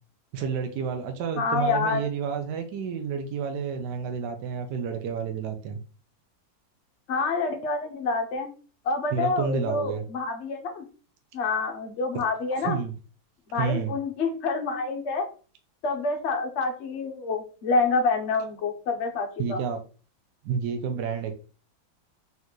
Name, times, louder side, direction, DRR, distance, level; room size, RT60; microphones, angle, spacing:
voice 1, 0.3-5.8 9.1-10.0 12.6-12.9 13.5-13.9 19.4-19.8 20.4-21.3, right 6 dB, 70° right, 5 dB, 1.1 m, -30 dB
voice 2, 1.4-2.1 7.1-8.5 8.8-10.8 11.3-12.8 13.5-15.3 15.8-19.6, left 3 dB, 60° left, 5 dB, 0.7 m, -27 dB
4.1 x 3.9 x 3.0 m, 0.37 s
omnidirectional pair, 2.1 m